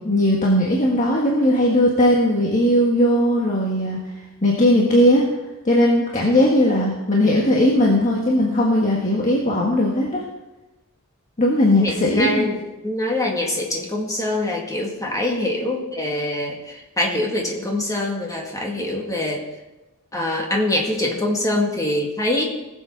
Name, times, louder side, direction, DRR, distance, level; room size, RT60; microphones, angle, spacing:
voice 1, 0.0-4.0 4.4-5.2 5.6-10.2 11.4-12.5, left 1 dB, 35° left, -2 dB, 1.5 m, -18 dB
voice 2, 11.8-19.5 20.1-22.4, left 1 dB, 15° left, 0 dB, 2.0 m, -24 dB
19.0 x 7.6 x 4.6 m, 1.0 s
head